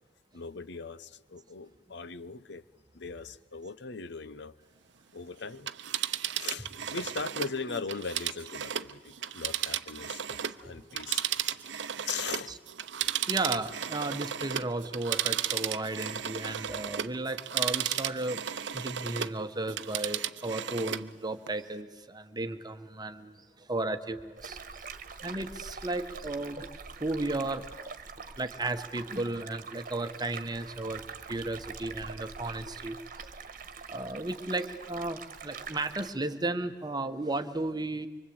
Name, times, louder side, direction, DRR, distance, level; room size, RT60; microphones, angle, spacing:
voice 1, 0.3-2.6 2.9-4.5 5.1-5.7 6.4-11.2 12.0-12.6 13.1-13.2, left 5 dB, 65° left, 15 dB, 0.8 m, -39 dB
Telephone, 5.5-10.6 10.9-19.4 19.7-21.1 21.5-21.6, right 10 dB, 70° right, 0.8 m, -34 dB
voice 2, 10.3-10.8 11.4-11.6 12.5-12.6 13.3-18.4 18.7-24.8 25.2-26.6 27.0-27.7 28.4-31.0 31.3-33.3 33.9-38.1, right 2 dB, 20° right, 9 dB, 1.2 m, -34 dB
sound 1, 24.4-36.1, right 5 dB, 45° right, 1.5 m, -44 dB
25.0 x 24.0 x 8.7 m, 1.2 s
head